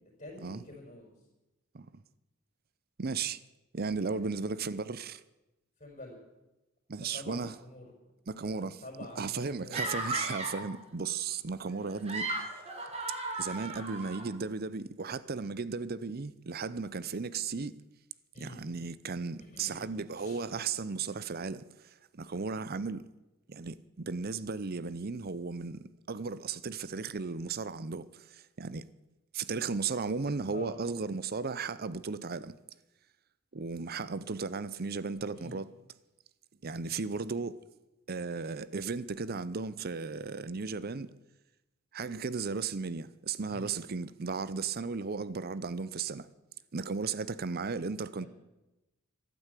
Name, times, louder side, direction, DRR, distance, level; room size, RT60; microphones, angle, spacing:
voice 1, 0.2-1.1 4.0-4.5 5.8-6.2 7.1-7.9 8.4-10.0 11.7-11.8 12.8-12.9 18.3-18.6 19.5-19.8 20.1-20.4 30.5-30.7 35.3-35.6 43.5-43.7 48.2-48.3, left 1 dB, 35° left, 5.4 m, -47 dB
voice 2, 3.0-3.4 3.7-5.2 6.9-7.6 8.3-12.3 13.4-17.7 18.4-21.7 22.1-23.0 23.5-28.8 29.3-32.6 33.5-35.7 36.6-37.6 38.1-41.1 41.9-46.3 46.7-48.3, right 4 dB, 45° right, 0.6 m, -35 dB
sound 1, 9.7-10.7 11.9-14.3, right 2 dB, 30° right, 2.8 m, -36 dB
14.0 x 12.5 x 8.3 m
head